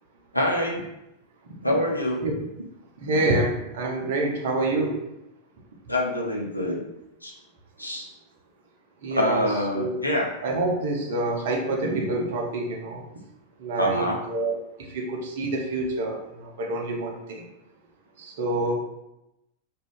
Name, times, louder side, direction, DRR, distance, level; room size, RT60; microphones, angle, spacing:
voice 1, 0.3-0.8 1.6-2.3 5.9-6.9 7.2-7.3 7.8-8.1 9.1-10.3 13.8-14.2, left 1 dB, 85° left, -1 dB, 0.5 m, -25 dB
voice 2, 3.0-5.0 9.0-9.5 9.7-10.0 10.4-13.0 13.6-14.5 14.9-17.4 18.2-18.8, right 2 dB, 55° right, 1 dB, 0.6 m, -27 dB
2.5 x 2.3 x 3.3 m, 0.87 s
figure-of-eight pair, 90°, 0 cm